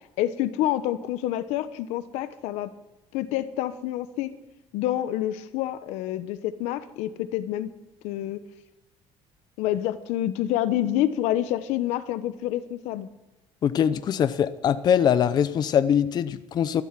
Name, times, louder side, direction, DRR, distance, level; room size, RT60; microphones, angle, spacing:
voice 1, 0.2-2.7 3.1-4.3 4.7-7.7 8.0-8.4 9.6-13.1, left 13 dB, 90° left, 13 dB, 1.0 m, -27 dB
voice 2, 13.6-16.8, left 8 dB, 40° left, 13 dB, 0.7 m, -22 dB
13.5 x 12.0 x 7.6 m, 0.98 s
cardioid pair, 150°, 11 cm